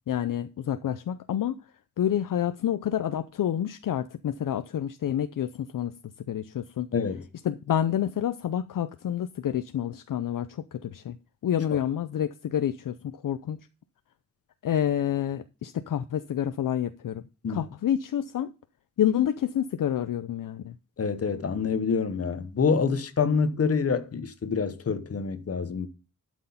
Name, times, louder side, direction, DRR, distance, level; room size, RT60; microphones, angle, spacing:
voice 1, 0.1-1.5 2.0-5.9 6.3-6.9 7.4-11.2 11.4-13.6 14.6-17.2 17.5-18.5 19.0-20.7, left 10 dB, 65° left, 0.6 m, -28 dB
voice 2, 6.9-7.2 17.4-17.7 21.0-25.9, left 5 dB, 40° left, 1.0 m, -26 dB
11.5 x 6.3 x 5.6 m
wide cardioid pair, 170°, 35 cm